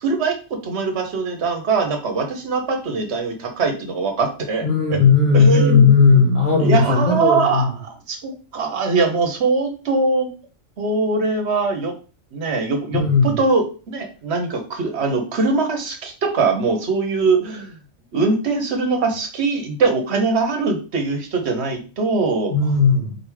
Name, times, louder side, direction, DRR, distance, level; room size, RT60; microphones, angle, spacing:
voice 1, 0.0-5.0 5.3-6.3 6.6-10.3 10.8-11.9 12.3-17.7 18.1-22.5, right 4 dB, 60° right, 4 dB, 1.1 m, -22 dB
voice 2, 4.6-7.7 12.9-13.3 22.5-23.2, left 5 dB, 45° left, -2 dB, 1.0 m, -15 dB
4.4 x 3.4 x 3.2 m, 0.35 s
omnidirectional pair, 1.3 m